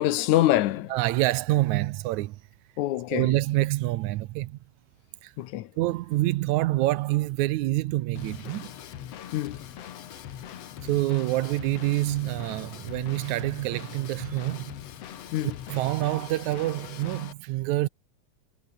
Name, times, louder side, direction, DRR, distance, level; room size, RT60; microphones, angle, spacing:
voice 1, 0.0-0.9 2.8-3.3 5.4-5.7 9.3-9.6 15.3-15.6, left 14 dB, 80° left, 2.3 m, -25 dB
voice 2, 0.9-2.4 3.1-4.6 5.2-5.3 5.8-8.7 10.8-14.8 15.7-17.9, right 17 dB, 80° right, 2.0 m, -26 dB
Drum kit / Drum, 8.2-17.3, left 10 dB, 60° left, 2.4 m, -42 dB
omnidirectional pair, 3.4 m